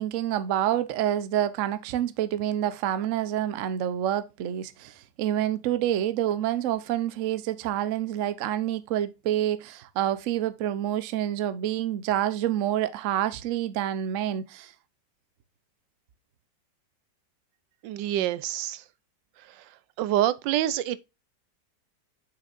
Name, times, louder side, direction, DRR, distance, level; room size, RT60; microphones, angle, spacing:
voice 1, 0.0-14.7, right 11 dB, 60° right, 0.9 m, -28 dB
voice 2, 17.8-18.8 19.5-19.6 20.0-21.0, right 13 dB, 85° right, 1.3 m, -26 dB
7.3 x 5.9 x 2.5 m
omnidirectional pair, 1.9 m